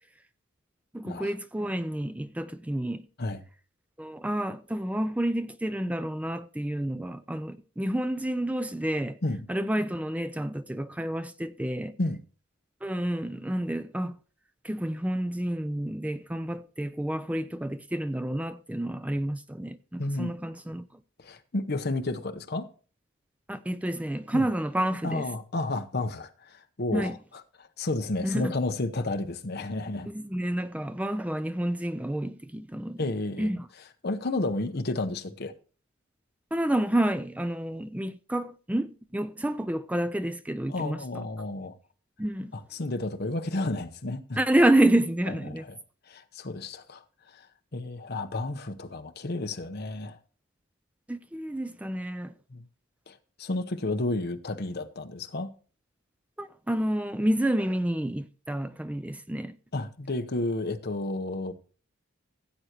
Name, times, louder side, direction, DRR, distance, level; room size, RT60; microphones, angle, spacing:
voice 1, 0.9-3.0 4.0-9.2 9.5-12.0 12.8-14.2 14.6-20.9 23.5-25.3 26.9-27.1 28.2-28.5 30.1-33.0 33.4-33.7 36.5-41.0 42.2-42.5 44.4-45.6 51.1-52.3 56.4-59.6, right 1 dB, 5° right, 0.3 m, -29 dB
voice 2, 20.0-20.3 21.2-22.7 24.3-24.5 25.0-27.2 27.6-30.1 33.0-33.5 34.0-35.5 40.7-41.7 42.5-44.4 45.3-45.8 46.1-47.5 47.7-50.2 52.5-52.6 53.1-55.5 59.7-61.5, left 2 dB, 50° left, 0.9 m, -32 dB
15.5 x 7.9 x 2.9 m
head